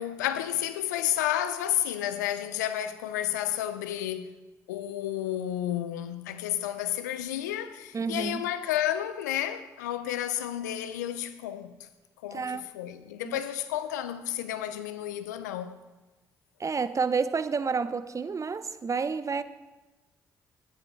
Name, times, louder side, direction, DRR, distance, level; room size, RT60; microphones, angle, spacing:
voice 1, 0.0-4.4 4.7-11.8 12.2-15.8, left 12 dB, 85° left, 0.6 m, -31 dB
voice 2, 7.9-8.4 12.3-12.7 13.2-13.4 16.6-19.4, right 5 dB, 35° right, 0.7 m, -29 dB
11.5 x 9.7 x 4.8 m
hypercardioid pair, 45°, 9 cm